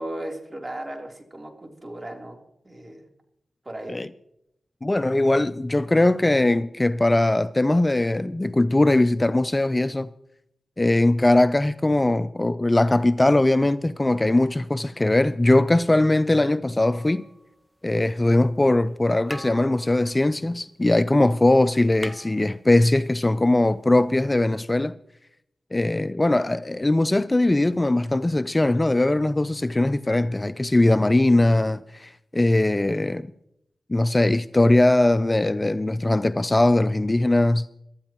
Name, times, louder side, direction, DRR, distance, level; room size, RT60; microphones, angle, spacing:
voice 1, 0.0-2.4 2.6-3.0 3.6-4.0, right 1 dB, 30° right, 3.3 m, -36 dB
voice 2, 4.8-10.1 10.8-17.2 17.8-24.9 25.7-33.3 33.9-37.7, left 2 dB, 25° left, 0.4 m, -20 dB
sound 1, 16.8-18.0 18.9-19.0 19.3-21.1 21.4-21.5 21.7-23.1 24.3-24.4, equal, ahead, 1.1 m, -42 dB
23.0 x 13.0 x 3.0 m
cardioid pair, 50°, 0 cm